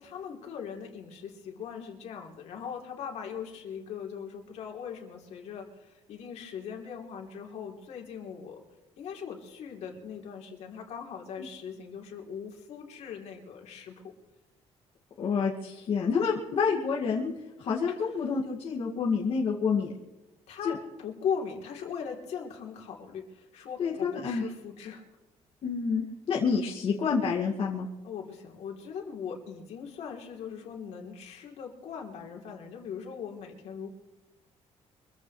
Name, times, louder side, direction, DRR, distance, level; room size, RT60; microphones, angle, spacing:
voice 1, 0.0-8.6 9.0-14.1 17.9-18.2 20.5-25.0 28.0-33.9, left 7 dB, 70° left, 1 dB, 3.5 m, -39 dB
voice 2, 15.2-17.3 17.6-19.9 20.6-20.7 23.8-24.4 25.6-27.9, left 5 dB, 50° left, -4 dB, 2.3 m, -28 dB
25.5 x 15.0 x 3.3 m, 1.1 s
cardioid pair, 160°, 12 cm